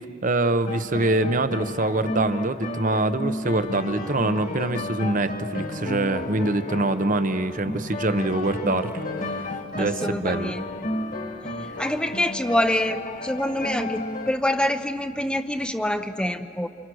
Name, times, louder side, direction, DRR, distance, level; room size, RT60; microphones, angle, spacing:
voice 1, 0.2-8.9 9.2-10.5, right 2 dB, 40° right, 11 dB, 0.9 m, -24 dB
sound 1, 0.7-14.3, left 1 dB, 45° left, 1.7 m, -33 dB
voice 2, 9.8-10.6 11.8-16.7, left 1 dB, 5° left, 6 dB, 0.7 m, -26 dB
28.5 x 27.5 x 6.3 m, 2.5 s
head